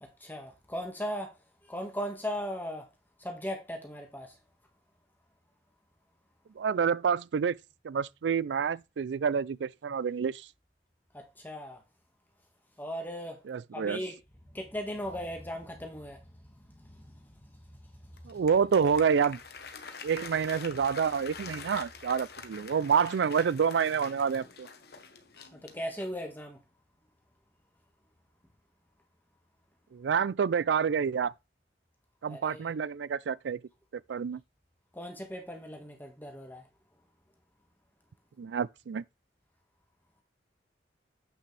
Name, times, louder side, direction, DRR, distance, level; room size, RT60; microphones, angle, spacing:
voice 1, 0.0-1.4 1.6-2.9 3.2-4.4 11.1-11.8 12.8-13.4 13.7-14.2 14.5-17.9 18.2-18.4 25.5-26.6 32.3-32.6 34.9-36.7, equal, 10° left, 1.6 m, -38 dB
voice 2, 6.6-7.6 7.8-10.5 13.5-14.0 18.3-19.4 20.0-24.7 29.9-31.3 32.2-33.6 34.1-34.4 38.4-39.0, right 6 dB, 80° right, 0.4 m, -28 dB
Applause, 18.2-26.3, left 5 dB, 60° left, 1.2 m, -46 dB
8.3 x 6.1 x 3.3 m
head